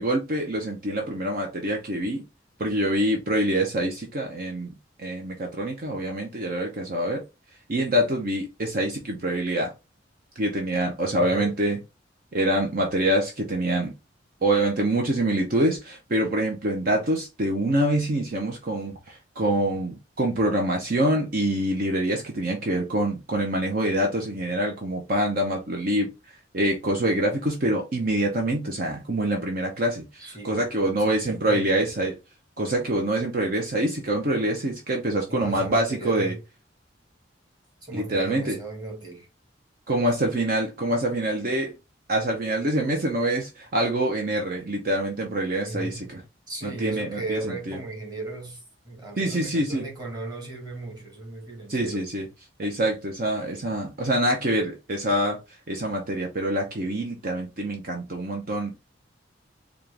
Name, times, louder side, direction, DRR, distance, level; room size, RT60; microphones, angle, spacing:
voice 1, 0.0-2.2 2.6-4.7 5.0-7.2 7.7-9.7 10.4-11.8 12.3-13.9 14.4-26.1 26.5-32.1 32.6-36.3 37.9-38.6 39.9-41.7 42.1-46.2 46.6-47.8 49.2-49.8 51.7-52.3 52.6-55.4 55.7-58.8, right 1 dB, 50° right, 0.8 m, -25 dB
voice 2, 11.2-11.6 30.2-31.9 35.3-36.4 37.8-39.3 45.6-46.1 46.5-52.1 52.6-52.7, right 2 dB, 20° right, 1.6 m, -36 dB
4.3 x 2.4 x 3.2 m
head